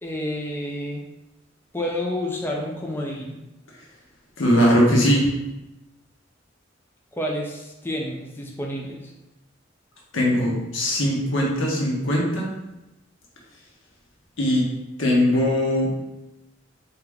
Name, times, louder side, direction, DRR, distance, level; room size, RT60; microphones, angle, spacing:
voice 1, 0.0-1.0 1.7-3.4 7.1-9.0, left 1 dB, 10° left, -1 dB, 0.4 m, -29 dB
voice 2, 4.4-5.3 10.1-12.5 14.4-14.7 15.0-15.9, equal, 90° left, -3 dB, 1.1 m, -20 dB
3.6 x 2.8 x 3.5 m, 0.97 s
head